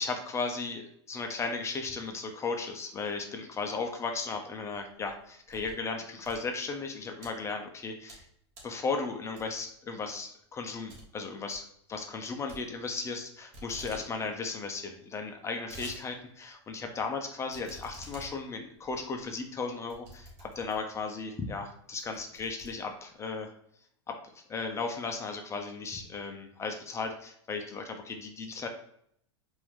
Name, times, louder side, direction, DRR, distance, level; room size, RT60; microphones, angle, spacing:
voice 1, 0.0-8.3 8.6-23.5 24.1-28.7, left 4 dB, 20° left, 4 dB, 0.5 m, -36 dB
sound 1, 4.9-5.8 6.1-7.3 7.8-8.3 8.5-8.8 9.4-9.7 10.1-10.2 10.5-10.6 10.9-11.0 11.3-11.6 12.5-13.2 13.5-14.0 14.4-14.5 14.6-14.7 15.3-16.0 16.4-16.5 17.5-21.0 21.6-21.7 22.0-23.2, right 1 dB, 40° right, 1.8 m, -49 dB
4.6 x 2.6 x 3.5 m, 0.68 s
hypercardioid pair, 120°, 15 cm